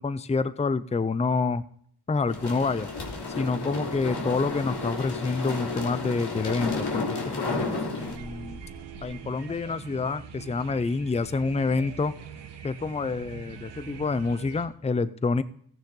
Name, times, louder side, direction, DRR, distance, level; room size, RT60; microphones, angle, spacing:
voice 1, 0.0-1.6 2.1-2.9 3.4-8.6 9.0-12.1 12.6-15.4, left 4 dB, 15° left, 15 dB, 0.6 m, -28 dB
sound 1, 2.3-8.1, left 3 dB, 70° left, 3.1 m, -32 dB
sound 2, 8.0-14.7, right 7 dB, 85° right, 1.5 m, -43 dB
14.5 x 9.1 x 3.8 m, 0.64 s
cardioid pair, 70°, 40 cm